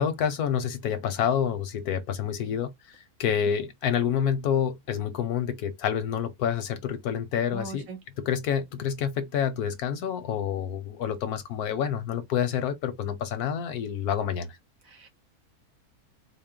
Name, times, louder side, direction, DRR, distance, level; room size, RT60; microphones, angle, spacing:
voice 1, 0.0-7.9 8.2-14.6, left 8 dB, 85° left, 1.3 m, -28 dB
voice 2, 7.5-8.0 14.8-15.1, right 4 dB, 65° right, 1.4 m, -39 dB
4.1 x 2.1 x 3.6 m
omnidirectional pair, 1.6 m